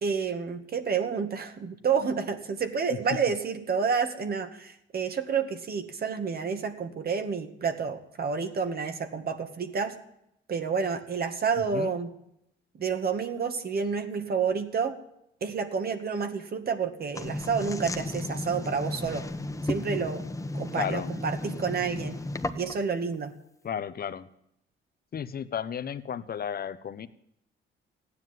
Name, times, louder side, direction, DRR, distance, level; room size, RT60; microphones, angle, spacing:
voice 1, 0.0-9.9 10.5-12.1 12.8-15.0 15.4-19.2 19.6-20.2 20.5-22.2 22.5-23.3, right 5 dB, 50° right, 7 dB, 2.1 m, -29 dB
sound 1, 17.2-22.9, left 1 dB, 15° left, 1.5 m, -34 dB
voice 2, 20.7-21.1 23.6-24.3 25.1-27.1, left 8 dB, 50° left, 13 dB, 1.2 m, -33 dB
15.5 x 10.0 x 9.4 m, 0.78 s
cardioid pair, 90°, 20 cm